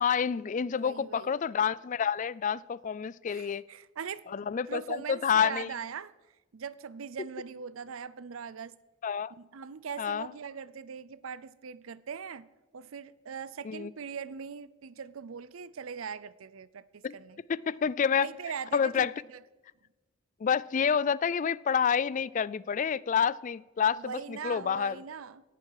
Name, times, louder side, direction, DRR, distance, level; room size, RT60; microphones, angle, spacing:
voice 1, 0.0-3.6 4.3-5.7 9.0-9.3 10.0-10.3 13.6-13.9 17.0-17.1 17.5-18.3 18.7-19.1 20.4-25.0, left 7 dB, 40° left, 0.3 m, -28 dB
voice 2, 0.8-1.4 3.3-4.2 4.7-6.1 6.5-8.8 9.3-12.5 12.7-17.4 18.2-19.4 24.0-25.4, right 6 dB, 80° right, 0.6 m, -41 dB
18.0 x 11.5 x 4.7 m
head